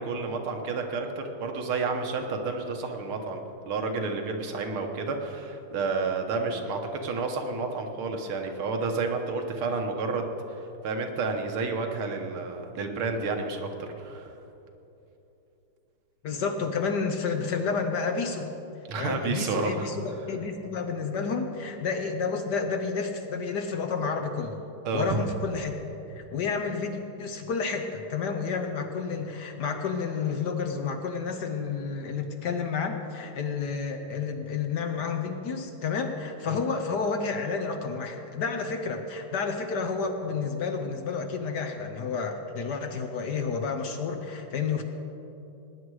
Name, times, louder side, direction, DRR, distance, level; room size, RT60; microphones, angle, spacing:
voice 1, 0.0-3.4 3.7-10.3 10.8-14.3 18.9-19.9 24.9-25.2 36.5-36.6, right 4 dB, 80° right, 4 dB, 2.0 m, -30 dB
voice 2, 16.2-18.5 19.0-24.6 24.9-25.7 26.2-44.8, left 5 dB, 60° left, 5 dB, 1.2 m, -30 dB
19.5 x 9.7 x 4.8 m, 2.9 s
omnidirectional pair, 2.3 m